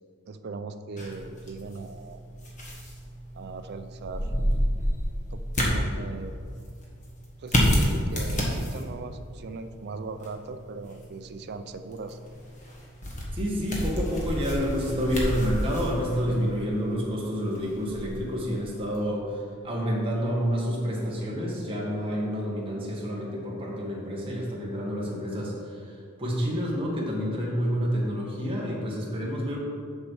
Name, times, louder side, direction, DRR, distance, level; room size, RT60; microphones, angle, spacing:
voice 1, 0.3-2.2 3.3-4.3 5.3-6.3 7.4-12.2, right 4 dB, 50° right, 10 dB, 0.4 m, -39 dB
sound 1, 1.0-19.0, equal, 35° left, 1.4 m, -30 dB
voice 2, 13.3-19.3 19.6-25.9 26.2-29.6, equal, 25° right, -4 dB, 1.6 m, -29 dB
7.3 x 6.4 x 4.7 m, 2.3 s
head